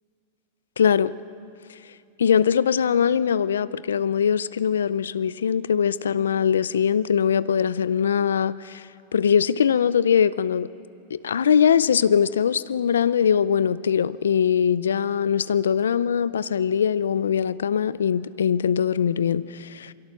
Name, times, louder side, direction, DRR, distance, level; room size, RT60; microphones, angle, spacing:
voice 1, 0.8-1.2 2.2-10.7 11.1-19.9, left 7 dB, 90° left, 18 dB, 0.5 m, -22 dB
22.0 x 16.5 x 7.1 m, 2.5 s
hypercardioid pair, 105°, 0 cm